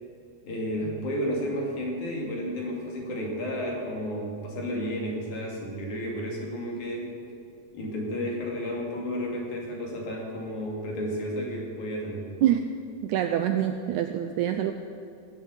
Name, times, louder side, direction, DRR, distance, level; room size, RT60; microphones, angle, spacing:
voice 1, 0.4-7.2 7.7-12.3, equal, 60° left, -1 dB, 3.9 m, -32 dB
voice 2, 13.0-14.7, right 11 dB, 80° right, 7 dB, 1.8 m, -25 dB
20.0 x 8.1 x 8.2 m, 2.4 s
omnidirectional pair, 4.0 m